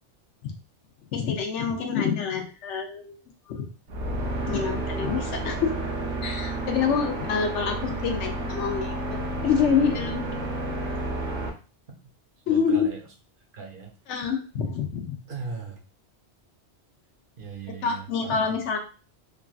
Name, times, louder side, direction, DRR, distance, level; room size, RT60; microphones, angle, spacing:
voice 1, 1.1-3.2 3.5-3.7 4.5-5.8 6.2-10.2 12.5-12.9 14.1-15.2 17.8-18.8, left 6 dB, 90° left, 4 dB, 1.0 m, -26 dB
sound 1, 3.9-11.5, right 2 dB, 90° right, 1.0 m, -31 dB
voice 2, 12.5-13.0 13.5-13.9 15.3-15.8 17.4-18.6, right 5 dB, 55° right, 1 dB, 0.7 m, -38 dB
3.2 x 2.5 x 2.3 m, 0.35 s
omnidirectional pair, 1.2 m